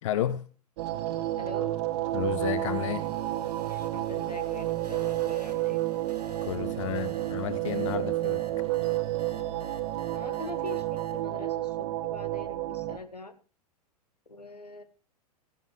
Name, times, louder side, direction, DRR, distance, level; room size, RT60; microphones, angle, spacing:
voice 1, 0.0-0.4 2.1-3.1 6.4-8.4, left 11 dB, 50° left, 15 dB, 0.7 m, -31 dB
sound 1, 0.8-13.0, right 15 dB, 45° right, 1.1 m, -31 dB
voice 2, 1.4-1.7 3.7-5.8 10.1-13.3 14.3-14.8, left 2 dB, 80° left, 11 dB, 1.3 m, -43 dB
sound 2, 2.1-11.2, right 4 dB, 80° right, 1.7 m, -49 dB
17.0 x 15.0 x 3.2 m, 0.38 s
figure-of-eight pair, 100°, 20 cm